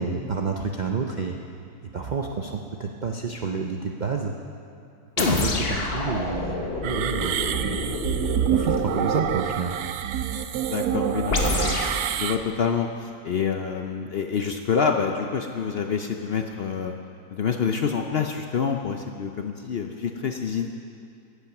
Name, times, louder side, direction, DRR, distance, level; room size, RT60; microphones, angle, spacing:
voice 1, 0.0-1.4 1.9-4.3 5.2-7.9 8.4-9.8, right 5 dB, 55° right, 2 dB, 0.5 m, -29 dB
sound 1, 5.2-9.5 11.3-12.0, left 3 dB, 45° left, 1.3 m, -27 dB
sound 2, 6.8-12.4, right 9 dB, 80° right, 1.1 m, -27 dB
voice 2, 10.7-11.8 12.1-16.9 17.3-20.7, left 6 dB, 60° left, 4 dB, 0.7 m, -27 dB
16.0 x 8.4 x 6.0 m, 2.5 s
omnidirectional pair, 1.6 m